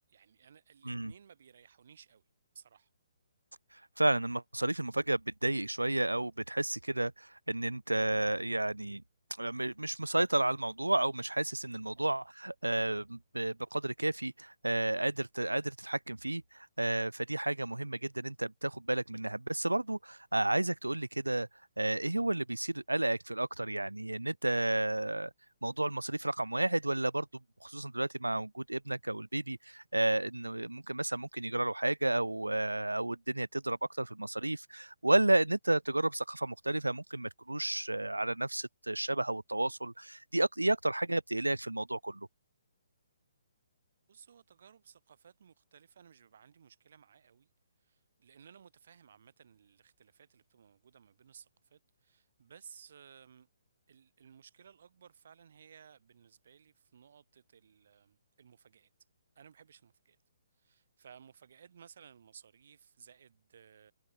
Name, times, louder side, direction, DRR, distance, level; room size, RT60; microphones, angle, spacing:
voice 1, 0.1-2.2 2.5-2.9 11.9-12.1 44.1-47.5 47.8-53.5 53.9-58.9 59.3-60.2 60.6-63.9, right 7 dB, 50° right, 6.5 m, -58 dB
voice 2, 4.0-9.0 9.4-21.5 21.8-25.3 25.6-27.3 27.6-42.3, right 2 dB, 80° right, 0.5 m, -32 dB
figure-of-eight pair, 130°, 0 cm